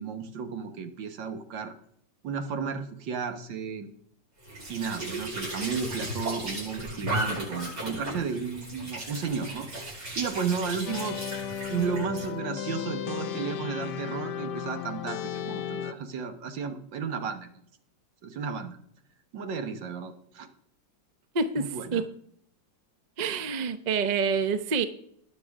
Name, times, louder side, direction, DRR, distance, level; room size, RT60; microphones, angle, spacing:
voice 1, 0.0-1.8 2.2-3.9 4.7-9.7 10.2-17.5 18.2-18.8 19.3-20.5 21.6-22.1, right 6 dB, 80° right, 8 dB, 1.9 m, -33 dB
Squeak / Sink (filling or washing) / Trickle dribble, 4.4-12.3, right 1 dB, 60° right, 7.0 m, -36 dB
sound 1, 10.9-15.9, left 8 dB, 70° left, 1.3 m, -34 dB
voice 2, 21.3-22.1 23.2-24.8, right 5 dB, 40° right, 10 dB, 0.6 m, -27 dB
20.0 x 7.1 x 3.6 m, 0.68 s
omnidirectional pair, 2.0 m